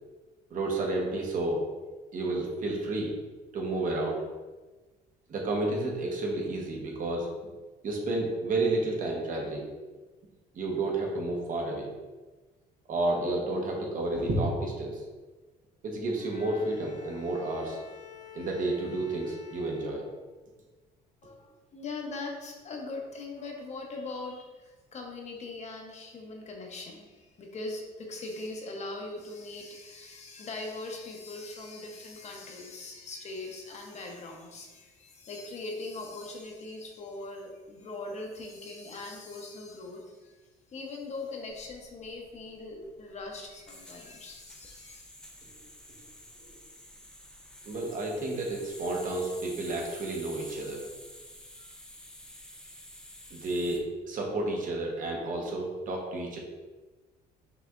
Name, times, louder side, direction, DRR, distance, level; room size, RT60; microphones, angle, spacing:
voice 1, 0.5-1.6 2.1-3.1 3.5-4.2 5.3-7.3 7.8-9.6 10.5-11.9 12.9-15.0 15.8-17.8 18.3-20.0 46.4-46.5 47.6-50.8 53.3-56.4, right 2 dB, 50° right, 0 dB, 1.1 m, -31 dB
Bowed string instrument, 16.2-20.6, left 8 dB, 75° left, 0.6 m, -49 dB
voice 2, 21.2-40.4 40.7-45.0, left 2 dB, 40° left, 1 dB, 0.9 m, -41 dB
sound 1, 41.5-53.8, left 1 dB, 5° left, 0.6 m, -49 dB
5.7 x 3.4 x 2.5 m, 1.2 s
cardioid pair, 110°, 17 cm